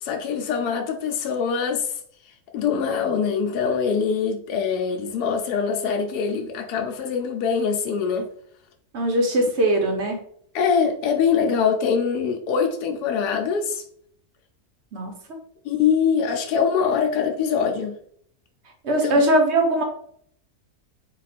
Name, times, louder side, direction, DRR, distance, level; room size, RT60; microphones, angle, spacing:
voice 1, 0.0-1.9 2.5-8.3 10.5-13.8 15.6-18.0 19.0-19.2, left 6 dB, 90° left, 1.1 m, -23 dB
voice 2, 8.9-10.2 14.9-15.1 18.8-19.8, right 1 dB, 55° right, 1.0 m, -20 dB
4.3 x 2.3 x 4.1 m
omnidirectional pair, 1.6 m